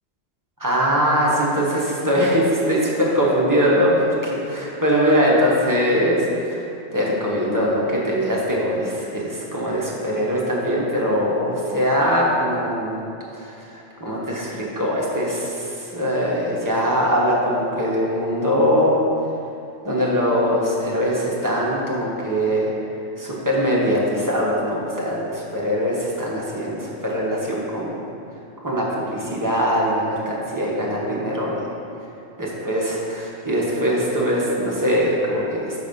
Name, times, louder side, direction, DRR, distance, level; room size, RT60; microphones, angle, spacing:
voice 1, 0.6-6.6 6.9-13.0 13.3-18.9 19.8-22.7 23.2-28.0 28.6-31.7 32.4-32.9 33.4-35.7, equal, 15° right, -5 dB, 0.8 m, -22 dB
5.9 x 4.1 x 5.2 m, 2.7 s
omnidirectional pair, 1.3 m